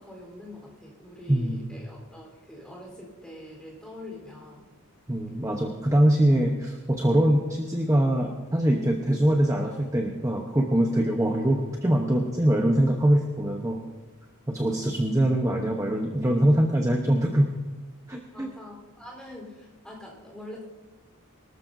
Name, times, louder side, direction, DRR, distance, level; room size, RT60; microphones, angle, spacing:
voice 1, 0.0-4.7 18.3-20.6, left 1 dB, 5° left, -3 dB, 4.0 m, -44 dB
voice 2, 1.3-1.6 5.1-13.8 14.5-17.5 18.1-18.5, right 1 dB, 15° right, 1 dB, 0.9 m, -23 dB
23.5 x 13.5 x 2.7 m, 1.2 s
head